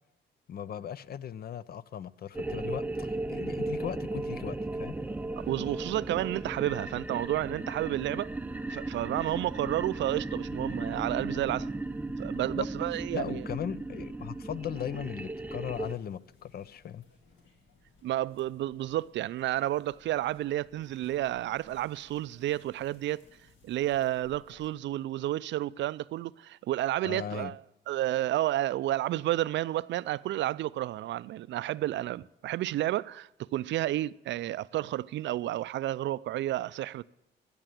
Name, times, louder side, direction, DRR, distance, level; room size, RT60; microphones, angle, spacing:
voice 1, 0.5-5.0 12.5-12.7 13.1-17.0 27.0-27.5, left 9 dB, 50° left, 0.5 m, -38 dB
sound 1, 2.3-15.9, right 2 dB, 10° right, 0.5 m, -36 dB
voice 2, 5.4-8.3 8.7-11.7 12.2-13.4 18.0-23.2 23.6-27.6 27.9-37.0, right 14 dB, 70° right, 0.4 m, -31 dB
sound 2, 15.6-24.7, left 3 dB, 70° left, 2.9 m, -61 dB
15.0 x 6.9 x 9.1 m
cardioid pair, 90°, 20 cm